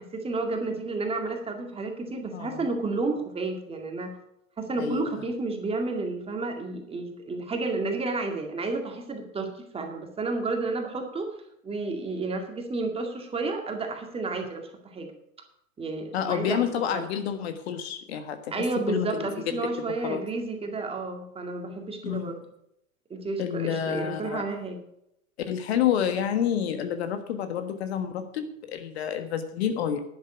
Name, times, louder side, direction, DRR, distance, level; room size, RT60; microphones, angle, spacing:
voice 1, 0.0-4.1 4.6-11.3 11.6-15.1 15.8-16.6 16.9-17.1 18.5-22.4 23.1-24.8, right 3 dB, 15° right, 3 dB, 2.1 m, -31 dB
voice 2, 2.3-2.7 4.8-5.2 16.1-19.2 20.0-20.2 22.0-22.3 23.4-24.4 25.5-30.0, left 9 dB, 50° left, 8 dB, 1.5 m, -29 dB
11.5 x 11.0 x 5.0 m, 0.77 s
figure-of-eight pair, 95°, 41 cm